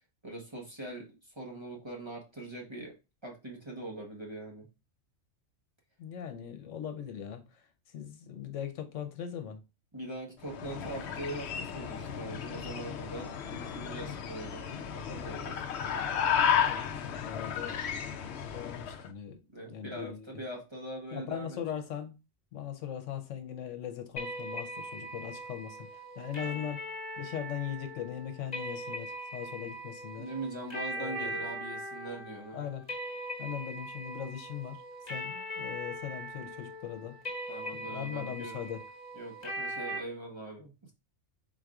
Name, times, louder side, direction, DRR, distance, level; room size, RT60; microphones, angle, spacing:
voice 1, 0.2-2.9 3.2-4.7 9.9-14.6 14.9-15.6 19.5-21.6 26.4-26.7 30.2-32.6 37.5-38.6 39.2-40.9, right 1 dB, 25° right, 0.9 m, -42 dB
voice 2, 6.0-7.6 7.9-9.6 15.7-18.0 18.5-19.4 19.7-20.4 21.1-22.1 22.5-26.8 27.2-30.3 30.9-31.4 32.5-32.8 33.4-34.8 35.1-37.2 37.8-38.8, left 9 dB, 80° left, 1.1 m, -40 dB
sound 1, 10.4-19.1, left 8 dB, 65° left, 0.8 m, -33 dB
sound 2, 24.2-40.0, right 1 dB, 35° left, 1.4 m, -40 dB
3.9 x 2.6 x 4.7 m
omnidirectional pair, 1.3 m